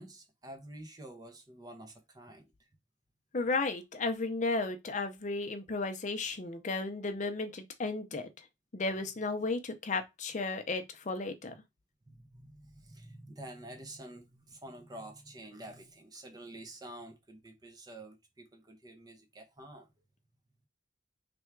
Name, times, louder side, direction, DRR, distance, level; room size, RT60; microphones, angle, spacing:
voice 1, 0.0-2.5 12.1-19.9, right 1 dB, 20° right, 0.5 m, -49 dB
voice 2, 3.3-8.5 8.7-11.5, left 3 dB, 40° left, 0.5 m, -34 dB
3.4 x 2.3 x 4.4 m
head